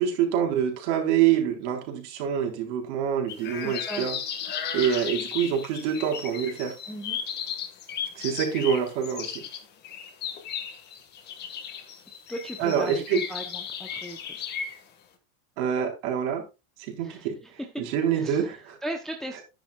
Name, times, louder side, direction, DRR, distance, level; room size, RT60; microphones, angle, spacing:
voice 1, 0.0-4.2 4.7-6.8 8.2-9.4 12.6-13.2 15.6-16.4 16.8-18.8, right 8 dB, 55° right, 4.0 m, -26 dB
sound 1, 3.3-14.8, left 8 dB, 25° left, 1.6 m, -35 dB
voice 2, 3.6-4.1 6.9-7.2 12.3-14.4 17.0-17.7 18.1-19.4, equal, ahead, 0.7 m, -37 dB
11.5 x 10.5 x 2.3 m
supercardioid pair, 170°, 40 cm